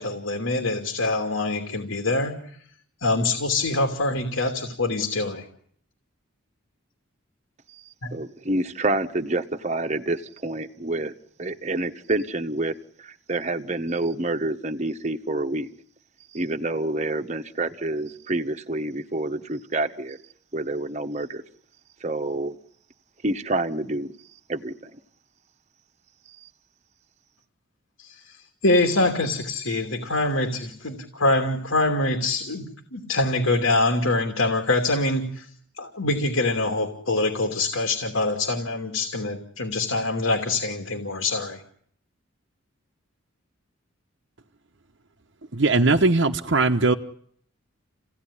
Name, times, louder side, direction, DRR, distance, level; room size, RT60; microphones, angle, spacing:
voice 1, 0.0-2.4 3.0-5.5 8.0-8.1 28.0-35.5 35.8-41.6, left 2 dB, 85° left, 4 dB, 2.8 m, -24 dB
voice 2, 8.1-11.1 11.4-15.7 16.3-20.2 20.5-21.4 22.0-22.6 23.2-24.1 24.5-25.0 26.4-26.5, right 2 dB, 35° right, 7 dB, 1.2 m, -28 dB
voice 3, 45.5-46.9, right 3 dB, 60° right, 3 dB, 1.0 m, -19 dB
29.0 x 17.0 x 10.0 m, 0.65 s
head